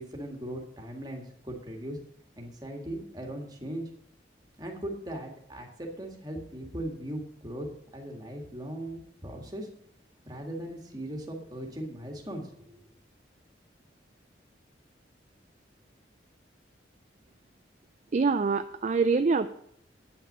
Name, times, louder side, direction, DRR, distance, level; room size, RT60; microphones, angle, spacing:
voice 1, 0.0-2.0 2.4-3.9 4.6-7.7 7.9-9.7 10.3-12.8, right 1 dB, 20° right, 1 dB, 1.9 m, -39 dB
voice 2, 18.1-19.5, right 4 dB, 40° right, 9 dB, 0.4 m, -25 dB
9.3 x 5.9 x 8.1 m, 0.71 s
head